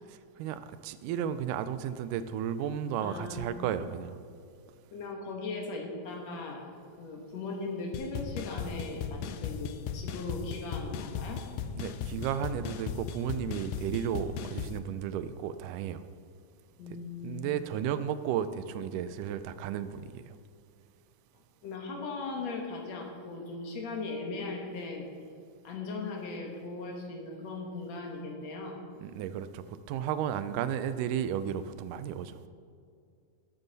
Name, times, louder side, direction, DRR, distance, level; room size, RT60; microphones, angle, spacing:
voice 1, 0.1-4.2 11.8-16.0 17.2-20.4 29.0-32.4, right 9 dB, 85° right, 12 dB, 2.1 m, -34 dB
voice 2, 3.0-3.6 4.9-6.6 7.0-11.4 16.8-17.4 21.6-25.1 25.6-28.8, left 3 dB, 60° left, 1 dB, 2.3 m, -38 dB
sound 1, 7.9-14.8, left 7 dB, 85° left, 2.2 m, -37 dB
12.5 x 11.0 x 4.0 m, 2.3 s
omnidirectional pair, 3.8 m